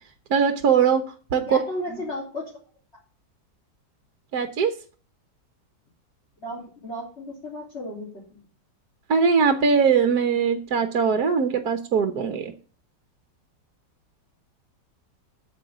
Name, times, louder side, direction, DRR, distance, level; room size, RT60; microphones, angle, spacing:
voice 1, 0.3-1.0 1.3-1.6 4.3-4.7 9.1-12.5, right 6 dB, 65° right, 8 dB, 1.5 m, -21 dB
voice 2, 1.4-2.5 6.4-8.4, left 1 dB, 35° left, -6 dB, 3.9 m, -34 dB
8.9 x 7.2 x 8.1 m, 0.39 s
omnidirectional pair, 1.9 m